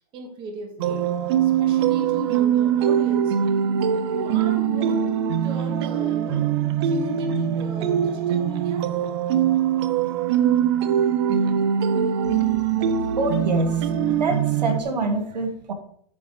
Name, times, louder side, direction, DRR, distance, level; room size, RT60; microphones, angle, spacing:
voice 1, 0.1-1.1 1.4-3.4 4.1-5.1 5.4-6.5 6.8-8.9 10.0-10.3, right 1 dB, 25° right, 3 dB, 1.9 m, -36 dB
sound 1, 0.8-14.8, right 9 dB, 40° right, 0.7 m, -22 dB
voice 2, 13.2-13.7 14.1-15.7, right 2 dB, 90° right, 5 dB, 2.2 m, -26 dB
13.5 x 6.6 x 3.4 m, 0.65 s
hypercardioid pair, 155°, 21 cm